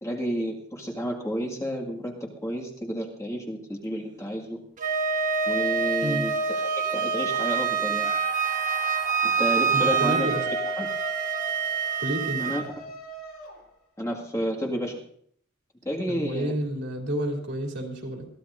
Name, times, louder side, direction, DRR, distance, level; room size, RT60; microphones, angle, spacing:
voice 1, 0.0-4.6 5.5-8.1 9.2-10.3 10.8-10.9 12.4-12.6 14.0-15.0 15.9-16.5, equal, 15° left, -2 dB, 2.0 m, -31 dB
Wind instrument woodwind instrument, 4.8-12.7, right 6 dB, 40° right, 1.3 m, -26 dB
sound 1, 8.0-14.1, left 3 dB, 90° left, 2.8 m, -39 dB
voice 2, 9.7-10.5 12.0-12.5 16.1-18.3, right 1 dB, 60° right, 1 dB, 3.1 m, -30 dB
22.0 x 14.5 x 2.6 m, 0.63 s
head